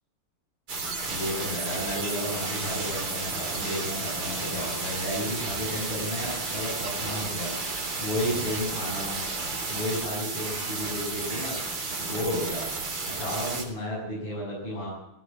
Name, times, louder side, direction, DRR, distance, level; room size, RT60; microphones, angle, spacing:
sound 1, 0.7-13.6, right 3 dB, 80° right, 4.5 m, -32 dB
voice 1, 1.1-9.2 9.7-11.6 12.0-12.7 13.0-14.9, equal, 85° left, -8 dB, 9.1 m, -32 dB
18.0 x 16.5 x 9.1 m, 0.87 s
omnidirectional pair, 2.4 m